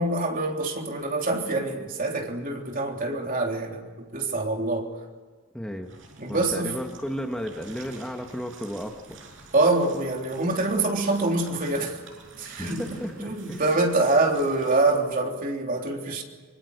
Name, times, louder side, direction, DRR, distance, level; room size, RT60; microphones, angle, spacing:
voice 1, 0.0-4.9 6.2-6.8 9.5-12.0 12.4-16.2, right 2 dB, 45° right, 1 dB, 3.5 m, -25 dB
voice 2, 5.5-6.0 6.3-8.9 12.6-13.6, equal, 5° left, 3 dB, 1.6 m, -33 dB
sound 1, 5.8-15.0, right 3 dB, 70° right, 6.4 m, -48 dB
25.0 x 24.5 x 6.7 m, 1.5 s
head